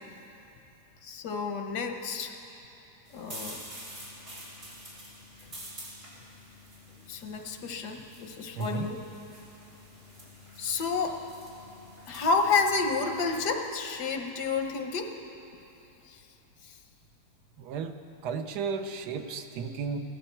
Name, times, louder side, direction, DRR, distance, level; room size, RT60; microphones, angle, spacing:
voice 1, 1.0-2.3 3.1-3.6 7.1-9.0 10.6-11.2 12.1-15.1 16.1-16.2 16.6-16.8, left 4 dB, 85° left, 5 dB, 1.6 m, -30 dB
sound 1, 3.0-13.5, equal, 50° right, 3.3 m, -47 dB
voice 2, 8.5-8.9 17.6-17.9 18.2-20.0, right 5 dB, 85° right, 7 dB, 1.3 m, -33 dB
16.5 x 13.0 x 4.5 m, 2.9 s
omnidirectional pair, 1.7 m